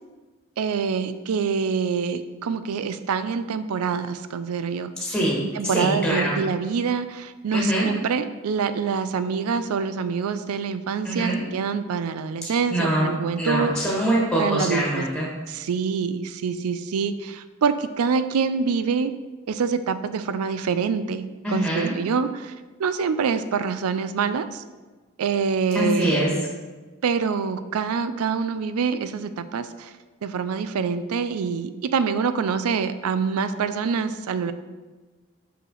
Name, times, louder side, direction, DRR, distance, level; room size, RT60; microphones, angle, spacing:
voice 1, 0.6-4.9 5.5-13.7 14.3-15.0 15.5-19.1 19.5-22.5 22.8-24.6 25.2-26.3 27.0-29.9 30.2-34.5, right 6 dB, 85° right, 12 dB, 0.4 m, -25 dB
voice 2, 5.0-6.4 7.5-7.9 11.0-11.4 12.4-13.1 13.4-15.3 21.4-21.9 25.7-26.3, right 1 dB, 5° left, -6 dB, 1.5 m, -24 dB
5.8 x 5.6 x 3.9 m, 1.3 s
head